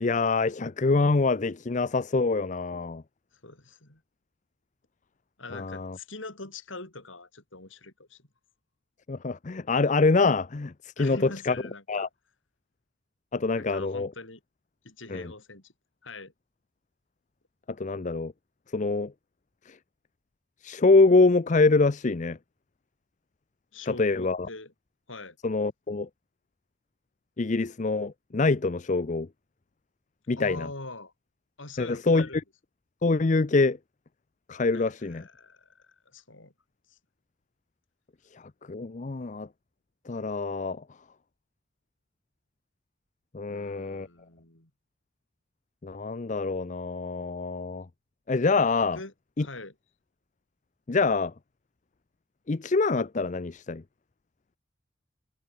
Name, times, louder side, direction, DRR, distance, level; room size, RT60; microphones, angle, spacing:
voice 1, 0.0-3.0 5.5-6.0 9.1-11.6 11.9-12.1 13.3-14.1 15.1-15.3 17.8-18.3 18.7-19.1 20.6-22.4 23.9-24.5 25.4-26.1 27.4-29.3 30.3-30.7 31.8-32.3 33.0-33.8 34.5-35.2 38.7-39.5 40.1-40.8 43.3-44.1 45.8-47.8 48.3-49.0 49.4-49.5 50.9-51.3 52.5-53.8, left 3 dB, 40° left, 0.6 m, -25 dB
voice 2, 3.4-4.0 5.4-8.3 11.0-12.1 13.6-14.4 14.8-15.7 16.0-16.3 23.7-24.7 25.1-25.4 30.4-31.1 31.6-32.4 34.7-36.5 36.9-37.0 43.5-44.7 48.9-49.7, left 2 dB, 85° left, 5.7 m, -43 dB
head